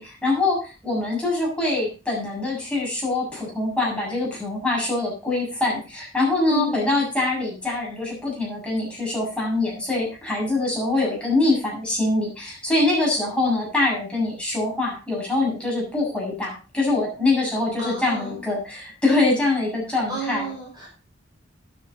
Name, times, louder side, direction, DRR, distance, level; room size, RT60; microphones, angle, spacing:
voice 1, 0.0-20.5, left 2 dB, 5° left, -4 dB, 7.3 m, -24 dB
voice 2, 6.5-6.9 17.8-18.4 20.1-20.9, right 4 dB, 25° right, -3 dB, 5.7 m, -32 dB
12.0 x 10.0 x 4.2 m, 0.33 s
head